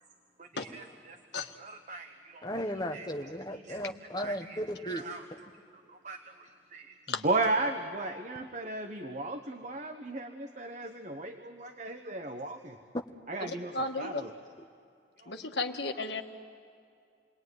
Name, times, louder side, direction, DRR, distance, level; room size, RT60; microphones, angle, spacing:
voice 1, 0.4-2.5 2.9-3.1 3.5-3.8 4.2-5.2 5.9-12.8 13.3-14.3 15.2-15.3, right 2 dB, 45° right, 6 dB, 1.1 m, -36 dB
voice 2, 2.4-5.0, equal, 25° left, 5 dB, 1.3 m, -35 dB
voice 3, 13.4-14.2 15.3-16.2, left 3 dB, 75° left, 5 dB, 1.6 m, -34 dB
28.5 x 21.0 x 9.6 m, 2.4 s
head